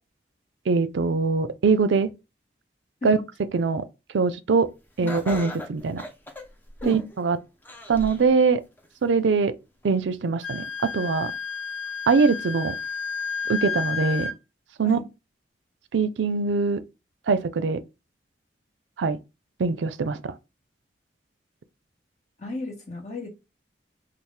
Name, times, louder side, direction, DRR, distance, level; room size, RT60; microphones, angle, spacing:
voice 1, 0.7-2.1 3.0-3.2 3.5-3.8 4.1-4.7 5.0-6.0 6.8-7.4 7.9-8.6 9.0-9.6 9.8-11.3 12.1-12.8 13.5-14.3 14.8-15.0 15.9-16.8 17.3-17.8 19.0-19.2 19.6-20.3, right 4 dB, 90° right, 0.4 m, -22 dB
Laughter, 5.1-7.2 7.7-8.3 8.8-8.9 9.8-9.9, left 1 dB, 10° left, 0.4 m, -37 dB
Wind instrument woodwind instrument, 10.4-14.3, left 5 dB, 85° left, 0.6 m, -31 dB
voice 2, 22.4-23.3, left 2 dB, 40° left, 1.0 m, -35 dB
4.3 x 2.0 x 3.2 m
head